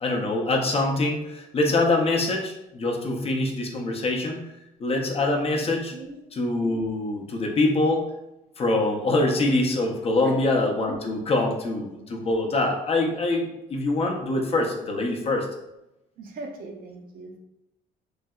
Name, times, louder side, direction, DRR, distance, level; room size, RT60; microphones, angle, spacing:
voice 1, 0.0-4.5 4.8-5.9 6.3-8.1 8.6-15.5, left 2 dB, 35° left, 1 dB, 0.5 m, -24 dB
voice 2, 16.2-17.4, right 3 dB, 60° right, 2 dB, 0.6 m, -38 dB
3.2 x 2.7 x 2.3 m, 0.91 s
cardioid pair, 110°, 17 cm